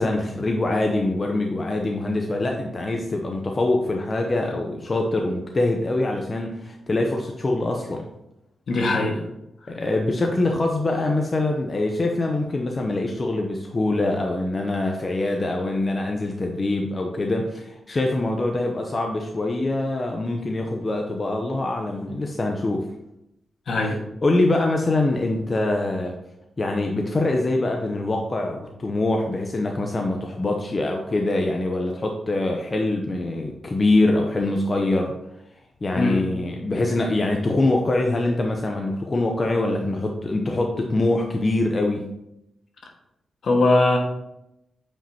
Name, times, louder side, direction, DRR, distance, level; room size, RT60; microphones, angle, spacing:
voice 1, 0.0-8.1 9.7-22.9 23.9-24.0 24.2-26.1 26.6-35.1 35.8-42.1, left 2 dB, 30° left, 2 dB, 0.7 m, -24 dB
voice 2, 8.7-9.2 23.7-24.0 35.9-36.2 43.4-44.0, left 2 dB, 60° left, 1 dB, 1.5 m, -20 dB
8.7 x 5.1 x 2.8 m, 0.86 s
cardioid pair, 110°, 0 cm